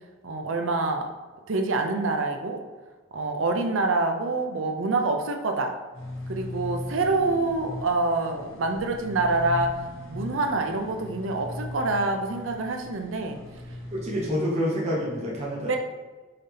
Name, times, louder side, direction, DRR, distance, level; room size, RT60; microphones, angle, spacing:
voice 1, 0.2-1.1 1.5-2.6 3.1-5.7 6.3-9.7 10.1-13.4 15.7-15.8, right 3 dB, 65° right, 4 dB, 0.5 m, -26 dB
sound 1, 5.9-14.3, left 1 dB, 70° left, 1.0 m, -38 dB
voice 2, 13.9-15.8, equal, 35° right, -6 dB, 0.9 m, -27 dB
5.6 x 2.8 x 3.3 m, 1.3 s
head